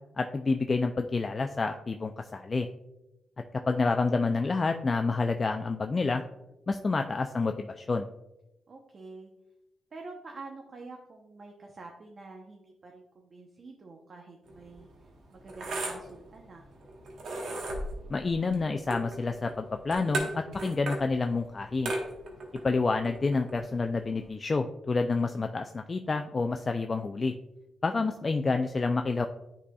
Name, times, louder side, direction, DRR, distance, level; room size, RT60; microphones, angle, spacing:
voice 1, 0.2-2.7 3.7-6.2 6.7-8.1 18.1-21.9 22.6-27.3 27.8-29.3, left 3 dB, 35° left, 5 dB, 0.3 m, -28 dB
voice 2, 8.7-9.3 9.9-16.7, right 3 dB, 50° right, 1 dB, 0.8 m, -48 dB
sound 1, 14.5-24.3, right 2 dB, 80° right, 1.3 m, -38 dB
9.9 x 4.1 x 2.3 m, 0.92 s
cardioid pair, 85°, 0 cm